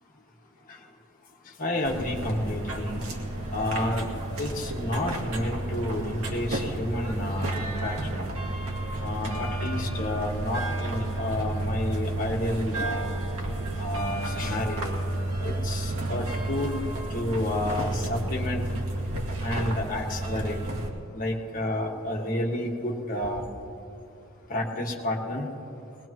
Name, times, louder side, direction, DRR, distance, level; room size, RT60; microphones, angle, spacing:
voice 1, 1.6-3.0 3.5-4.1 4.4-8.3 9.0-13.2 13.8-15.0 15.4-16.8 17.1-18.6 19.4-20.6 21.1-23.5 24.5-25.5, left 1 dB, 40° left, -2 dB, 1.8 m, -30 dB
sound 1, 1.8-20.9, right 1 dB, 90° right, 2.1 m, -31 dB
21.5 x 20.0 x 3.1 m, 2.6 s
head